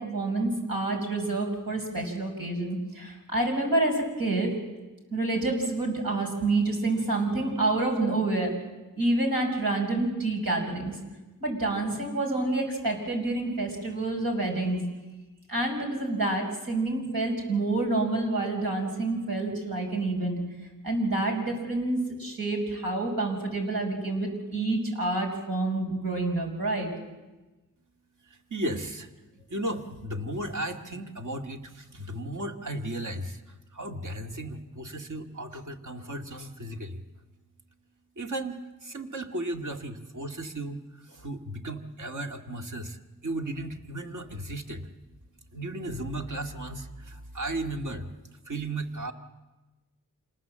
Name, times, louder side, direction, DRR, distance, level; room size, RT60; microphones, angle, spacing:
voice 1, 0.0-4.6 5.1-8.5 9.0-11.0 11.4-14.8 15.5-20.4 20.8-26.9, right 2 dB, 85° right, 1 dB, 5.8 m, -28 dB
voice 2, 28.3-29.1 29.4-37.0 38.2-44.9 45.5-48.1 48.5-49.1, right 1 dB, 60° right, 3 dB, 2.1 m, -35 dB
26.5 x 19.5 x 7.7 m, 1.1 s
cardioid pair, 60°, 34 cm